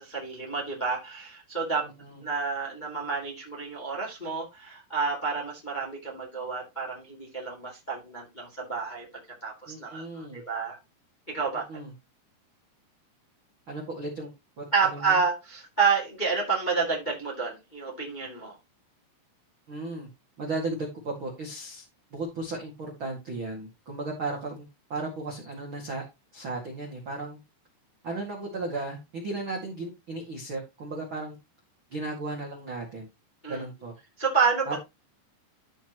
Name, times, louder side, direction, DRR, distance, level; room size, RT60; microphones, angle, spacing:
voice 1, 0.0-1.8 2.2-9.1 9.4-10.8 11.3-11.6 14.7-18.6 33.4-33.6 34.2-34.8, right 5 dB, 15° left, -2 dB, 1.7 m, -29 dB
voice 2, 1.8-2.2 9.7-10.4 11.7-11.9 13.7-14.3 14.6-15.2 19.7-20.1 20.4-21.8 22.1-26.0 26.3-27.4 28.0-31.4 31.9-33.1 33.5-33.9 34.6-34.8, right 2 dB, 45° right, -1 dB, 1.7 m, -35 dB
13.0 x 5.6 x 3.0 m, 0.23 s
omnidirectional pair, 5.5 m